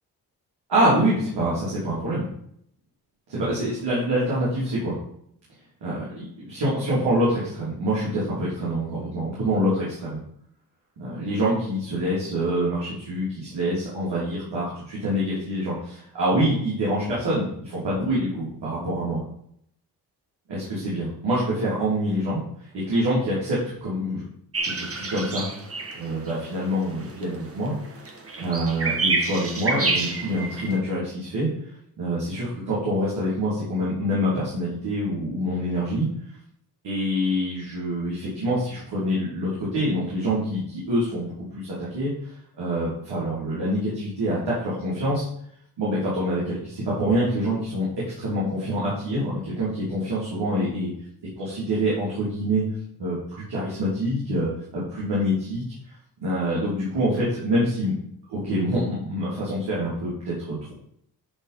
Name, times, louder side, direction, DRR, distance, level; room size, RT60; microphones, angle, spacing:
voice 1, 0.7-2.3 3.3-5.0 5.8-10.2 11.0-14.7 15.0-19.2 20.5-22.4 22.8-24.2 24.6-25.5 26.0-27.7 28.4-31.5 32.0-36.1 36.8-42.1 42.6-45.2 45.8-47.8 48.2-50.9 51.4-52.6 53.0-53.2 53.5-55.6 56.2-57.9 58.3-60.7, equal, 75° right, -9 dB, 3.3 m, -26 dB
sound 1, 24.5-30.8, right 3 dB, 35° right, 1.5 m, -28 dB
9.8 x 4.1 x 5.1 m, 0.71 s
supercardioid pair, 50°, 42 cm